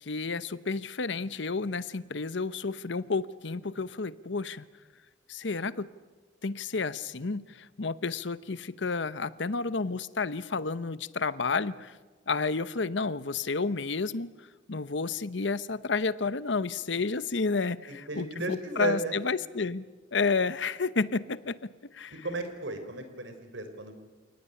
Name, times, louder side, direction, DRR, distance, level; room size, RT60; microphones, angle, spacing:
voice 1, 0.0-4.7 5.3-5.9 6.4-12.0 12.3-14.3 14.7-19.8 20.1-22.3, left 4 dB, 65° left, 16 dB, 0.9 m, -31 dB
voice 2, 17.9-19.2 22.1-23.9, right 2 dB, 70° right, 8 dB, 4.0 m, -34 dB
28.5 x 18.5 x 10.0 m, 1.3 s
head